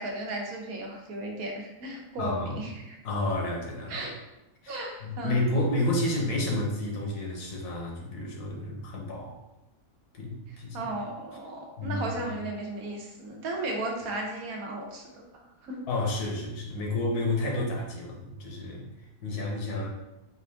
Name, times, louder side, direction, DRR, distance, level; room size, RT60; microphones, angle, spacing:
voice 1, 0.0-3.0 3.9-4.1 4.7-5.4 10.7-15.8, right 1 dB, 70° right, 0 dB, 1.2 m, -35 dB
voice 2, 2.2-2.6 3.0-4.1 4.6-9.4 10.1-10.9 11.8-12.3 15.9-18.8 19.2-19.9, left 1 dB, 80° left, 0 dB, 1.4 m, -30 dB
5.1 x 2.5 x 3.4 m, 0.95 s
omnidirectional pair, 1.6 m